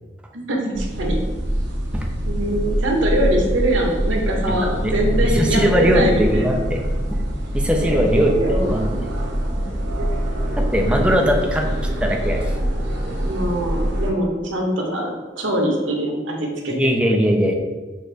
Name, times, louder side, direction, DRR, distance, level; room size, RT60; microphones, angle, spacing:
voice 1, 0.3-1.2 2.3-6.6 7.8-8.7 9.6-10.2 13.2-16.7, right 1 dB, 90° right, 0 dB, 0.9 m, -23 dB
sound 1, 0.7-14.1, equal, 65° right, 0.9 m, -24 dB
voice 2, 5.2-6.8 7.1-7.2 7.5-8.9 10.6-11.6 12.0-12.5 16.7-17.5, equal, 5° right, 1 dB, 0.5 m, -20 dB
6.2 x 2.5 x 3.3 m, 1.3 s
head